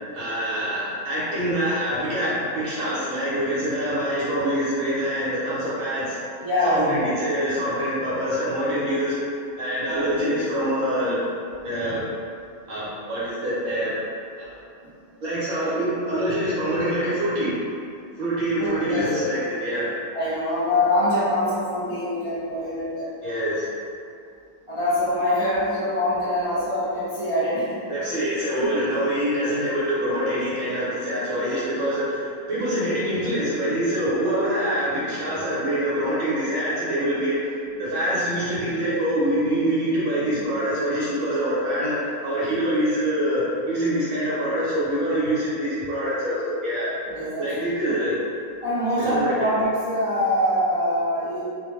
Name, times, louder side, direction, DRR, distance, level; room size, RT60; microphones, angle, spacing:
voice 1, 0.1-6.2 6.6-9.2 9.6-11.2 11.6-12.0 12.7-13.9 14.4-14.6 15.2-17.6 18.2-19.9 23.2-23.7 27.9-37.4 37.8-46.9 47.4-48.2 49.0-49.5, equal, 70° right, -10 dB, 1.1 m, -25 dB
voice 2, 6.4-7.0 9.8-10.4 14.8-14.9 18.6-19.3 20.1-23.1 24.7-27.8 28.6-28.8 37.6-37.8 47.1-48.0 48.6-51.4, left 1 dB, 45° right, -14 dB, 0.4 m, -24 dB
2.5 x 2.1 x 3.0 m, 2.4 s
omnidirectional pair, 1.5 m